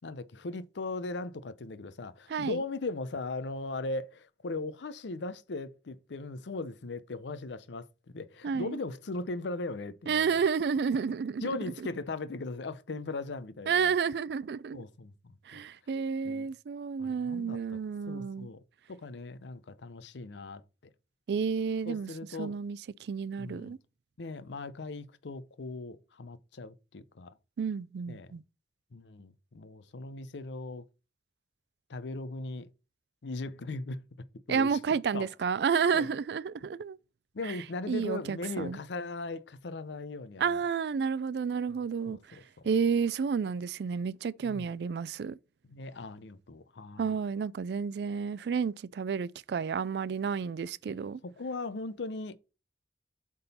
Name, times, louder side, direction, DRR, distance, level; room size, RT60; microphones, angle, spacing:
voice 1, 0.0-7.9 8.1-10.4 11.4-13.9 14.7-15.6 16.2-16.5 17.0-17.6 18.1-18.6 18.9-20.6 21.9-22.6 23.4-23.8 24.2-27.3 28.1-28.3 28.9-30.8 31.9-32.7 33.2-34.0 34.5-34.8 35.1-35.3 35.9-36.1 37.3-40.6 41.7-41.8 42.1-42.4 44.4-44.7 45.6-47.2 51.2-52.4, left 3 dB, 85° left, 0.6 m, -38 dB
voice 2, 2.3-2.6 8.4-8.8 10.1-11.5 13.7-14.8 15.5-18.5 21.3-22.1 22.4-23.8 27.6-28.4 34.5-37.0 37.4-37.6 37.9-38.8 40.4-42.4 42.6-45.4 47.0-51.2, right 6 dB, 70° right, 0.3 m, -31 dB
7.8 x 3.7 x 4.2 m
head